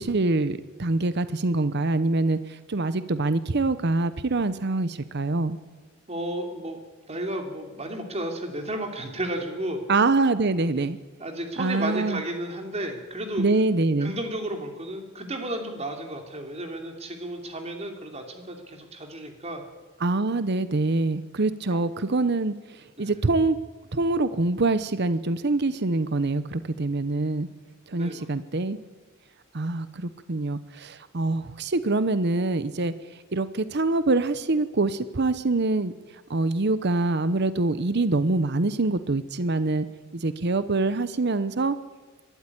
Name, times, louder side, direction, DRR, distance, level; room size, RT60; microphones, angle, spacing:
voice 1, 0.0-5.6 9.9-11.0 11.6-12.2 13.4-14.1 20.0-22.5 23.0-23.6 23.9-27.5 27.9-28.8 29.5-32.9 33.3-35.9 36.3-39.9 40.1-41.8, right 2 dB, 55° right, 13 dB, 0.8 m, -25 dB
voice 2, 6.1-6.8 7.1-9.8 11.2-13.4 14.0-19.6 21.7-21.8 23.0-23.1 27.9-28.3, right 1 dB, 30° right, 4 dB, 3.0 m, -33 dB
22.0 x 13.0 x 9.8 m, 1.3 s
head